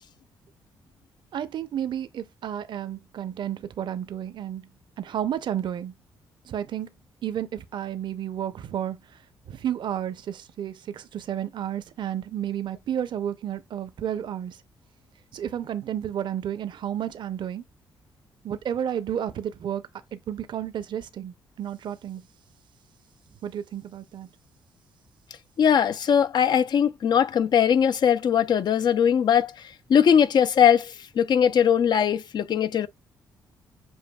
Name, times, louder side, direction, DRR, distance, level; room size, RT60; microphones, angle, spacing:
voice 1, 1.3-4.7 5.0-5.9 6.4-6.9 7.2-9.2 9.5-14.6 15.3-17.6 18.4-19.8 20.1-22.2 23.4-24.3, right 10 dB, 60° right, 0.6 m, -31 dB
voice 2, 25.6-29.5 29.9-32.9, left 8 dB, 55° left, 0.4 m, -20 dB
7.1 x 2.6 x 2.3 m
supercardioid pair, 55°, 9 cm